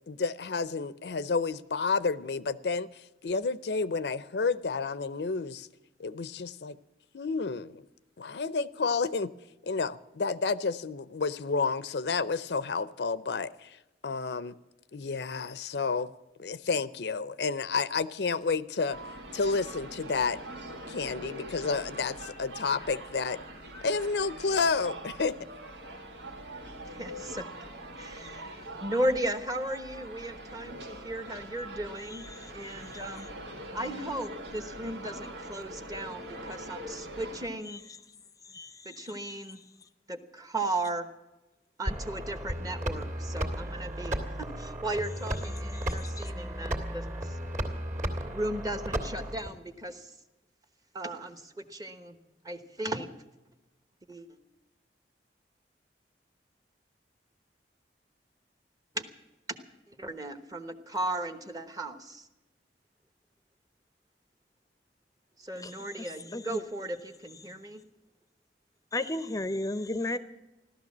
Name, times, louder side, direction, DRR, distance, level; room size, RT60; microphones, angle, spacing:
voice 1, 0.1-5.7 6.0-6.8 7.1-7.8 8.2-9.3 9.6-13.8 14.0-14.6 14.9-16.1 16.4-19.0 19.3-20.4 20.9-23.4 23.8-25.4, left 4 dB, 75° left, 16 dB, 0.6 m, -30 dB
sound 1, 18.9-37.5, right 1 dB, 90° right, 2.2 m, -43 dB
voice 2, 26.8-27.4 28.0-32.2 32.5-33.3 33.7-37.8 38.8-39.6 40.1-41.1 41.8-47.4 48.3-50.1 50.9-52.2 52.4-53.1 54.1-54.4 58.9-59.1 59.9-62.3 65.4-67.8, right 1 dB, 20° right, 9 dB, 1.1 m, -36 dB
voice 3, 32.0-33.0 37.7-37.8 38.5-39.1 45.7-46.3 65.6-66.6 68.9-70.2, left 2 dB, 20° left, 12 dB, 0.6 m, -36 dB
sound 2, 41.9-49.5, equal, 45° right, 2.2 m, -34 dB
16.0 x 12.5 x 7.3 m, 1.0 s
head